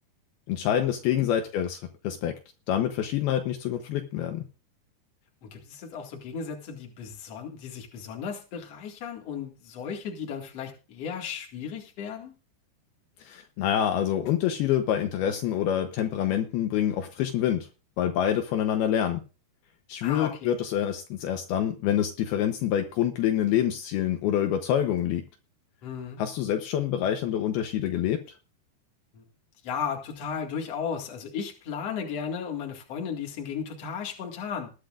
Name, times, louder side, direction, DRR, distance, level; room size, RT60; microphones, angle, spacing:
voice 1, 0.5-2.4 2.7-4.4 13.2-17.7 18.0-19.2 19.9-25.2 26.2-28.2, left 10 dB, 75° left, 5 dB, 2.7 m, -26 dB
voice 2, 5.4-12.3 20.0-20.5 25.8-26.2 29.1-29.2 29.6-34.7, left 7 dB, 45° left, 2 dB, 2.6 m, -35 dB
20.0 x 9.8 x 2.5 m, 0.32 s
omnidirectional pair, 4.7 m